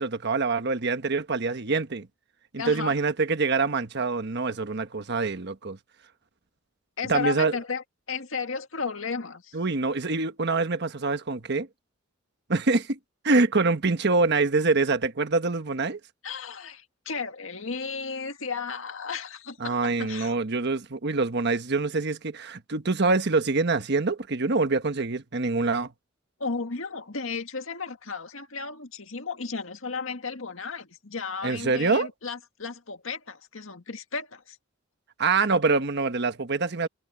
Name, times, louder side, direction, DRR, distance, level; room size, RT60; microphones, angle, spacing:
voice 1, 0.0-2.1 2.5-5.8 7.1-7.5 9.5-11.7 12.5-13.0 13.2-16.0 19.6-25.9 31.4-32.1 35.2-36.9, right 3 dB, 55° right, 1.2 m, -25 dB
voice 2, 2.6-3.0 7.0-9.6 16.2-20.4 26.4-34.6, left 4 dB, 80° left, 1.9 m, -34 dB
head